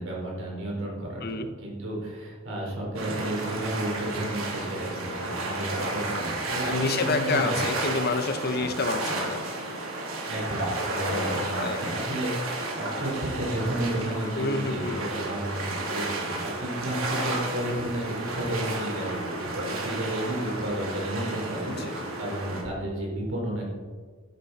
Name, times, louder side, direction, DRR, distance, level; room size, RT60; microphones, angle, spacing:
voice 1, 0.0-7.6 8.6-8.7 10.3-13.1 13.4-23.6, right 1 dB, 65° right, -2 dB, 4.5 m, -32 dB
sound 1, 2.9-22.6, right 2 dB, 90° right, 3.0 m, -32 dB
voice 2, 6.6-9.4 11.1-11.8 14.4-15.0 21.8-22.1, left 3 dB, 50° left, 8 dB, 1.0 m, -29 dB
13.0 x 11.0 x 4.3 m, 1.5 s
head